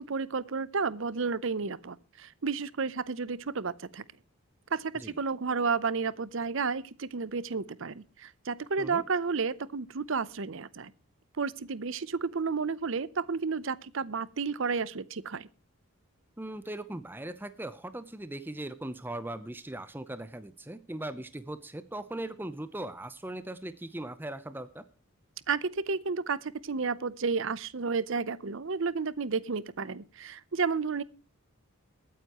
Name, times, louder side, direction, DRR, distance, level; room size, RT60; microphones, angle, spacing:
voice 1, 0.0-4.0 4.7-10.9 11.4-15.5 25.5-31.0, right 5 dB, 60° right, 0.6 m, -32 dB
voice 2, 16.4-24.8, right 1 dB, 10° right, 0.6 m, -39 dB
22.0 x 9.3 x 3.0 m
head